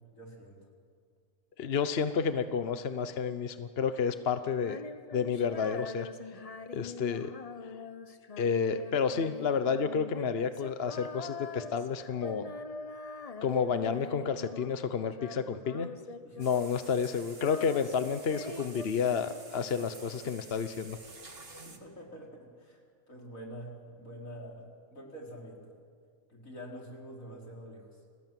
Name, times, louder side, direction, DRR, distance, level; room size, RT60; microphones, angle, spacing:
voice 1, 0.1-0.6 16.2-16.5 21.6-22.8 23.1-25.7 26.3-27.9, equal, 80° left, 0 dB, 5.0 m, -46 dB
voice 2, 1.6-4.8 5.1-6.1 6.7-7.3 7.6-7.7 8.4-12.5 13.4-15.9 16.4-21.0, left 6 dB, 50° left, 10 dB, 1.1 m, -30 dB
Female singing, 4.5-14.8 15.1-16.8 17.1-19.7, left 4 dB, 35° left, 0.8 m, -44 dB
sound 1, 16.4-21.8, right 3 dB, 45° right, 2.4 m, -50 dB
30.0 x 21.0 x 9.3 m, 2.1 s
omnidirectional pair, 1.4 m